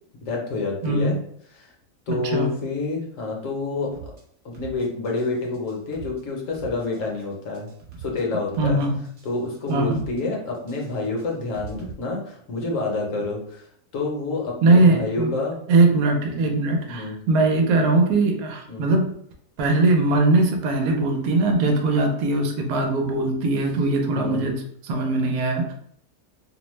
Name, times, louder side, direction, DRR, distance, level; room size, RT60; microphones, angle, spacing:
voice 1, 0.2-1.2 1.5-1.7 2.1-4.1 4.5-7.7 8.0-8.8 9.2-13.7 13.9-15.6 16.3-16.5 16.9-17.2 18.7-18.9 24.1-24.5, left 3 dB, 65° left, -1 dB, 1.0 m, -28 dB
voice 2, 0.8-1.1 2.1-2.5 8.6-9.0 9.7-10.0 14.6-15.3 15.7-19.0 19.6-24.5 24.8-25.7, right 2 dB, 85° right, 3 dB, 1.1 m, -20 dB
sound 1, 3.9-4.2 4.5-5.3 5.5-6.2 6.5-7.2 7.5-8.2 8.5-9.3 9.5-10.2 10.5-11.9, right 5 dB, 50° right, 0.9 m, -41 dB
2.7 x 2.1 x 3.0 m, 0.66 s
omnidirectional pair, 1.6 m